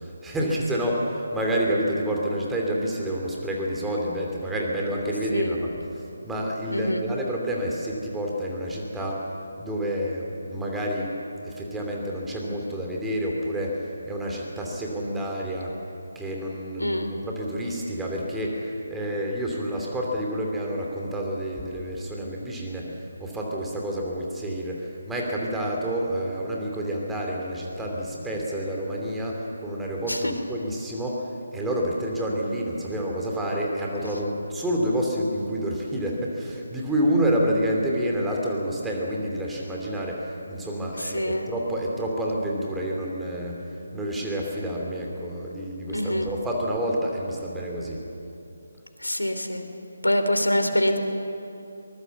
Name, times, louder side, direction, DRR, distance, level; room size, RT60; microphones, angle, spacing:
voice 1, 0.0-9.3 9.6-11.1 11.4-15.8 16.1-48.0, equal, 5° right, -2 dB, 2.8 m, -29 dB
voice 2, 6.7-7.0 16.8-17.1 30.1-30.3 41.1-41.4 45.9-46.3 49.0-49.6 50.0-51.0, left 1 dB, 80° left, 6 dB, 3.1 m, -24 dB
23.0 x 21.0 x 7.2 m, 2.9 s
figure-of-eight pair, 150°, 0 cm